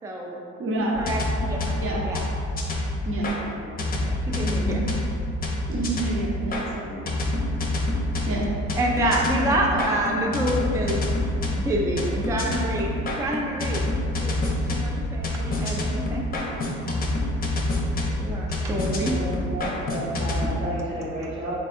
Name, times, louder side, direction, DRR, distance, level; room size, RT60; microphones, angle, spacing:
voice 1, 0.0-0.4 0.9-2.2 3.4-3.7 4.0-4.8 8.7-13.9 14.2-16.3 18.2-19.2, right 1 dB, 10° right, -1 dB, 0.3 m, -28 dB
voice 2, 0.6-1.0 1.7-2.0 3.0-3.4 4.5-4.9 5.7-7.0 8.3-8.4, right 2 dB, 45° right, -3 dB, 0.8 m, -28 dB
sound 1, 0.9-3.4 3.8-6.6 7.1-20.5, left 1 dB, 30° left, 0.7 m, -27 dB
voice 3, 18.9-21.6, right 1 dB, 85° right, -7 dB, 1.4 m, -32 dB
3.4 x 2.3 x 4.1 m, 2.5 s
cardioid pair, 90°, 30 cm